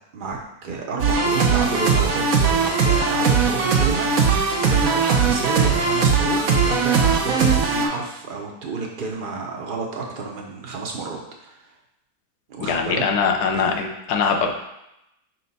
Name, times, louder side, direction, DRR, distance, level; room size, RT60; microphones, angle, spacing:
voice 1, 0.1-4.3 4.6-11.8 12.5-13.0 13.5-13.7, right 4 dB, 85° right, 0 dB, 0.4 m, -30 dB
sound 1, 1.0-7.9, right 5 dB, 60° right, 1.2 m, -19 dB
voice 2, 12.6-14.5, left 5 dB, 70° left, 3 dB, 1.3 m, -22 dB
5.6 x 4.3 x 4.0 m, 0.86 s
omnidirectional pair, 1.8 m